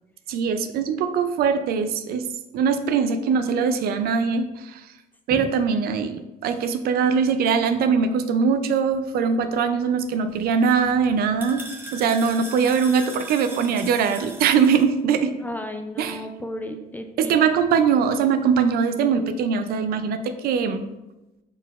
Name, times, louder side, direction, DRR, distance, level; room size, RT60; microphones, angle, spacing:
voice 1, 0.3-2.3 2.5-4.8 5.3-11.6 11.9-15.3 16.0-16.2 17.2-20.8, right 6 dB, 65° right, 9 dB, 0.4 m, -22 dB
sound 1, 10.3-14.8, right 2 dB, 10° right, 0.7 m, -40 dB
voice 2, 15.4-17.3, left 1 dB, 10° left, 6 dB, 0.3 m, -33 dB
4.5 x 4.0 x 2.4 m, 0.98 s
cardioid pair, 110°, 17 cm